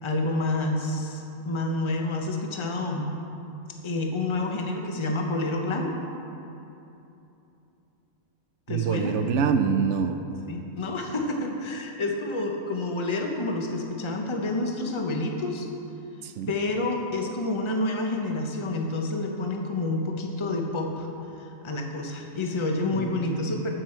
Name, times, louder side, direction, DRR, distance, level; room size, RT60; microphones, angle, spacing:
voice 1, 0.0-3.1 3.8-5.9 8.7-9.1 10.5-15.7 16.5-21.1 21.4-23.7, left 2 dB, 25° left, 2 dB, 0.8 m, -28 dB
voice 2, 8.7-10.2 16.2-16.5 22.9-23.6, right 6 dB, 65° right, 8 dB, 0.9 m, -26 dB
14.5 x 6.2 x 4.4 m, 2.9 s
omnidirectional pair, 1.4 m